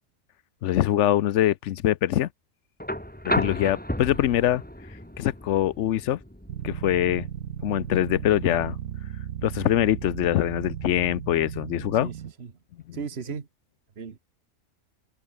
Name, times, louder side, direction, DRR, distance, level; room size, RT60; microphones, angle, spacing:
voice 1, 0.6-2.3 3.2-4.6 5.2-6.2 6.6-7.3 7.6-8.8 9.4-12.1 12.9-13.0, left 12 dB, 65° left, 0.9 m, -23 dB
sound 1, 2.8-10.8 12.2-12.3, equal, 5° left, 4.2 m, -35 dB
sound 2, 6.5-12.3, right 10 dB, 85° right, 1.4 m, -36 dB
voice 2, 12.0-12.5 12.9-13.5 14.0-14.2, right 6 dB, 50° right, 1.7 m, -36 dB
open air
omnidirectional pair, 1.4 m